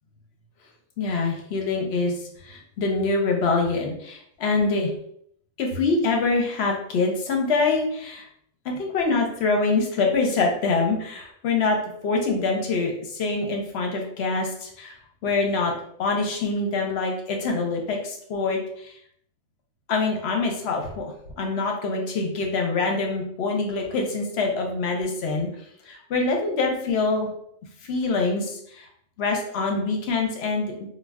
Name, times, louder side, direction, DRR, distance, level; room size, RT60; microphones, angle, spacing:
voice 1, 1.0-2.2 2.4-4.9 5.6-8.3 8.6-11.8 12.0-14.9 15.2-15.7 16.0-18.9 19.9-21.0 21.4-25.5 25.9-27.3 27.8-28.9 29.2-30.9, left 3 dB, 60° left, 2 dB, 0.8 m, -25 dB
2.3 x 2.1 x 3.4 m, 0.67 s
omnidirectional pair, 1.4 m